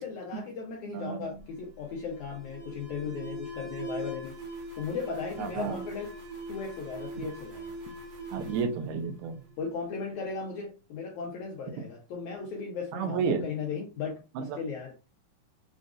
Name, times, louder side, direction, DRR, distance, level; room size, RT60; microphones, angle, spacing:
voice 1, 0.0-4.4 4.8-6.1 6.5-7.7 9.6-14.2 14.6-14.9, left 5 dB, 80° left, 1.7 m, -36 dB
voice 2, 0.9-1.4 5.4-5.8 8.3-9.4 12.9-13.5 14.4-14.6, right 5 dB, 85° right, 2.5 m, -31 dB
Alarm, 1.2-9.8, right 1 dB, 60° right, 1.5 m, -42 dB
6.9 x 2.5 x 2.4 m
omnidirectional pair, 4.5 m